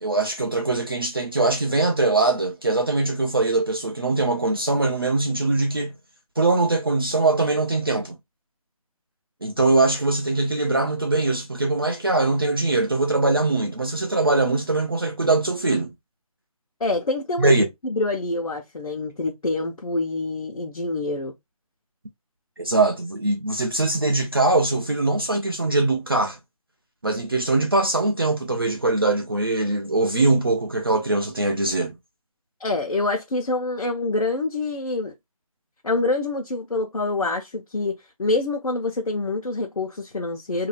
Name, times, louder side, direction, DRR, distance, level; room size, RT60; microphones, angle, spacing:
voice 1, 0.0-5.9 6.4-8.2 9.4-15.9 17.4-17.7 22.6-26.4 27.0-32.0, right 2 dB, 40° right, 0.5 m, -22 dB
voice 2, 16.8-17.5 17.8-21.3 32.6-35.1 35.8-40.7, left 2 dB, 70° left, 0.9 m, -26 dB
2.7 x 2.3 x 3.1 m
figure-of-eight pair, 175°, 19 cm